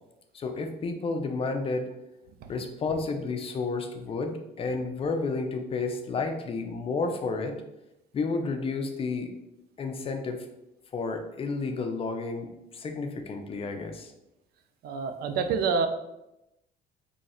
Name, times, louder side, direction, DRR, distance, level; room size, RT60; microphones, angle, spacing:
voice 1, 0.3-1.9 2.5-7.6 8.1-9.3 9.8-10.5 10.9-14.1, left 3 dB, 35° left, 5 dB, 0.5 m, -31 dB
voice 2, 14.8-15.9, right 5 dB, 65° right, 8 dB, 0.4 m, -27 dB
3.1 x 2.3 x 4.1 m, 0.89 s
cardioid pair, 110°, 17 cm